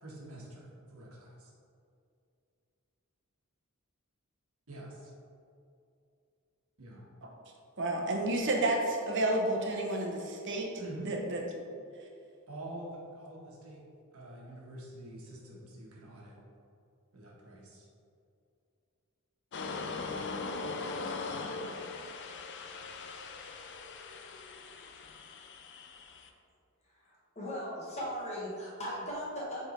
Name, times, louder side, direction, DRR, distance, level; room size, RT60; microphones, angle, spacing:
voice 1, 0.0-1.5 4.7-5.1 6.8-7.0 10.8-11.1 12.5-13.8 14.1-16.4 17.1-17.9, right 1 dB, 75° right, -3 dB, 1.4 m, -46 dB
voice 2, 7.8-10.7 11.0-11.4, right 1 dB, 55° right, 0 dB, 0.9 m, -30 dB
sound 1, 19.5-26.3, left 3 dB, 55° left, 0.5 m, -40 dB
voice 3, 26.8-29.7, equal, 30° left, -6 dB, 1.3 m, -38 dB
7.0 x 3.7 x 4.4 m, 2.5 s
head